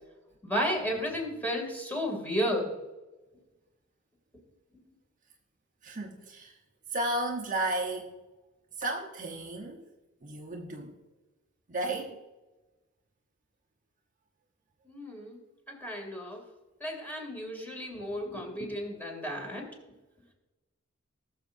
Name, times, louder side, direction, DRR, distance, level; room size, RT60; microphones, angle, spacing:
voice 1, 0.4-2.7 14.9-15.4 15.7-16.4 16.8-19.6, equal, 10° left, 2.6 m, -33 dB
voice 2, 5.8-6.6 6.9-8.1 8.8-9.9 10.2-11.0 11.7-12.2, right 2 dB, 40° right, 1.0 m, -33 dB
19.5 x 6.8 x 2.6 m
head